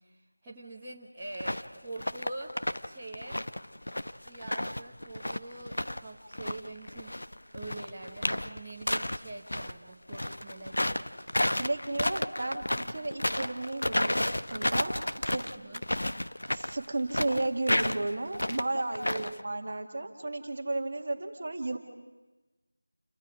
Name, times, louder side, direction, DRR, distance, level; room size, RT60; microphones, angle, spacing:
voice 1, 0.0-3.4 4.2-7.2 7.5-11.1 15.5-15.8 19.0-19.5, right 2 dB, 5° right, -11 dB, 1.1 m, -44 dB
sound 1, 1.3-1.7 2.0-2.9 3.1-6.0 6.3-9.7 10.1-19.4, left 1 dB, 80° left, 1.0 m, -31 dB
voice 2, 11.6-14.2 14.5-14.9 15.2-15.5 16.5-21.8, right 2 dB, 35° right, 3 dB, 1.9 m, -33 dB
29.0 x 23.5 x 5.0 m, 1.2 s
figure-of-eight pair, 175°, 0 cm